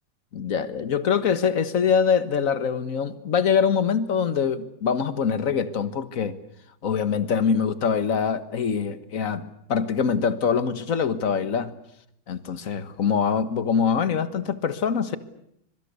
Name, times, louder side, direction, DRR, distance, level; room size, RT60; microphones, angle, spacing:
voice 1, 0.3-6.4 6.8-11.8 12.3-15.2, left 6 dB, 45° left, 12 dB, 1.6 m, -24 dB
25.5 x 23.5 x 8.3 m, 0.75 s
omnidirectional pair, 2.2 m